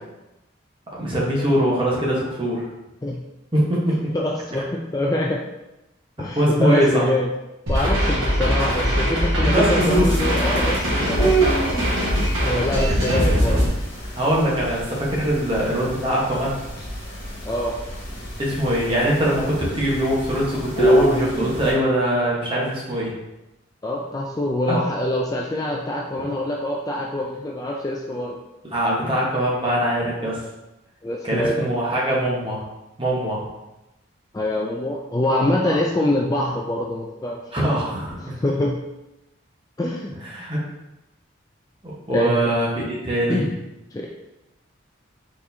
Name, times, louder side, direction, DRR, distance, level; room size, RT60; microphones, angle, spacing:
voice 1, 0.9-2.6 3.5-3.9 6.3-7.0 9.4-10.1 12.9-13.0 14.1-16.6 18.4-23.1 24.7-24.8 26.2-26.3 28.6-30.4 31.2-32.6 33.0-33.5 35.6-35.8 37.5-38.3 40.3-40.6 41.8-43.4, equal, 25° right, -5 dB, 1.1 m, -22 dB
voice 2, 4.1-5.4 6.2-7.3 7.7-11.5 12.4-13.6 17.4-17.8 23.8-28.4 31.0-31.6 34.3-37.4 38.2-38.8 39.8-40.1 42.1-42.5 43.3-43.5 43.9-44.1, left 1 dB, 20° left, -2 dB, 0.3 m, -24 dB
sound 1, 7.7-13.7, equal, 85° right, 1.4 m, -21 dB
sound 2, 9.8-21.7, right 1 dB, 50° left, 1.4 m, -27 dB
4.5 x 4.2 x 2.7 m, 0.96 s
head